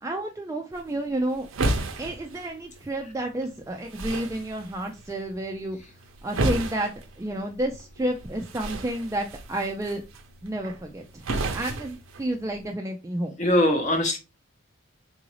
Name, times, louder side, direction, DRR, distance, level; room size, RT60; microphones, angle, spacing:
voice 1, 0.0-1.5 2.0-5.8 6.2-10.0 10.4-11.3 11.5-13.3, right 1 dB, 15° right, 0.3 m, -30 dB
sound 1, 0.7-12.7, right 2 dB, 90° right, 0.6 m, -34 dB
voice 2, 13.4-14.2, left 1 dB, 35° left, 0.7 m, -22 dB
3.8 x 2.5 x 3.0 m
head